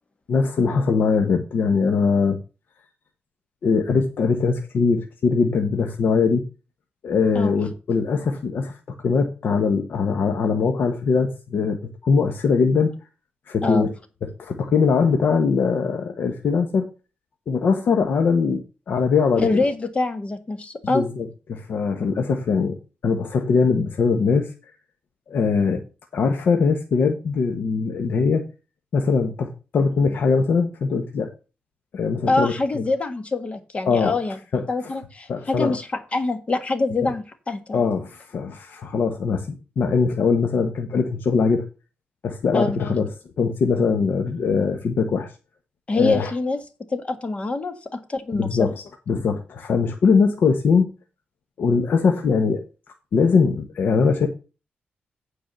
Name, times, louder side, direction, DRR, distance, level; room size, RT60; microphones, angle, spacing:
voice 1, 0.3-2.4 3.6-6.5 7.0-8.8 9.0-12.9 13.5-13.9 14.4-16.9 17.5-19.6 20.8-22.8 23.0-24.5 25.3-25.8 26.1-28.4 28.9-31.3 31.9-32.8 33.8-34.1 34.5-34.6 35.3-35.8 37.0-37.1 37.7-41.6 42.2-43.1 43.4-45.3 45.9-46.3 48.3-48.7 49.1-50.9 51.6-52.6 53.1-54.3, left 5 dB, 70° left, 5 dB, 1.2 m, -21 dB
voice 2, 19.4-21.1 32.3-34.4 34.7-37.9 42.5-42.8 45.9-46.6 46.9-48.7, left 3 dB, 35° left, 9 dB, 1.6 m, -25 dB
9.1 x 4.8 x 7.0 m, 0.32 s
cardioid pair, 105°, 4 cm